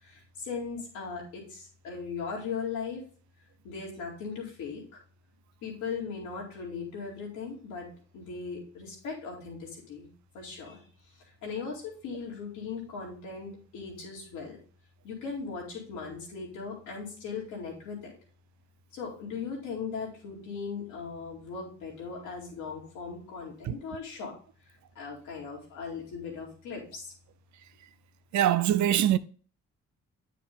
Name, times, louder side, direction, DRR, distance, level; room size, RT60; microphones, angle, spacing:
voice 1, 0.0-3.0 3.6-5.0 5.6-10.1 10.3-10.8 11.4-14.6 15.0-18.1 18.9-24.3 25.0-27.1, left 5 dB, 85° left, 2.4 m, -38 dB
voice 2, 28.3-29.2, right 12 dB, 65° right, 0.5 m, -23 dB
8.8 x 5.1 x 3.5 m
hypercardioid pair, 45°, 32 cm